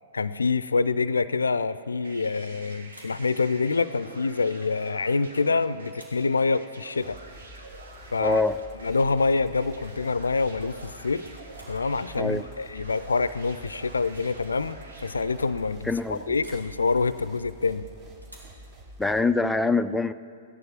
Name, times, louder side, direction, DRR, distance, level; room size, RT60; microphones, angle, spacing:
voice 1, 0.1-7.2 8.1-8.4 8.8-11.2 11.7-17.8, left 4 dB, 75° left, 16 dB, 0.5 m, -26 dB
sound 1, 2.0-15.9, right 2 dB, 70° right, 2.1 m, -47 dB
sound 2, 2.2-2.5 2.8-3.3 5.1-5.5 5.8-6.3 8.1-8.3 8.6-9.0 10.4-11.8 13.3-13.6 14.0-14.3 14.6-14.7 16.4-16.7 18.2-18.6, equal, 85° right, 3.2 m, -53 dB
sound 3, 7.0-19.2, equal, 30° right, 2.3 m, -48 dB
voice 2, 8.2-8.6 12.2-12.4 15.8-16.4 19.0-20.1, left 3 dB, 5° left, 9 dB, 0.4 m, -24 dB
16.0 x 11.0 x 5.9 m, 2.3 s
figure-of-eight pair, 110°, 0 cm